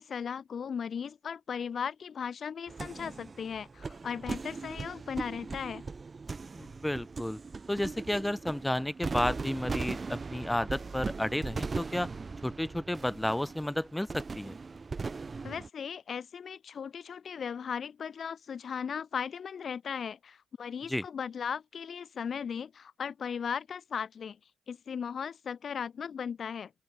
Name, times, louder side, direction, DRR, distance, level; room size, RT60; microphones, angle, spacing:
voice 1, 0.0-5.8 15.4-24.4 24.7-26.7, left 7 dB, 60° left, 1.5 m, -37 dB
sound 1, 2.7-15.7, right 4 dB, 40° right, 2.7 m, -39 dB
voice 2, 6.5-7.4 7.7-12.1 12.4-14.6 20.9-21.0, left 1 dB, 10° left, 2.8 m, -32 dB
open air
hypercardioid pair, 45°, 0 cm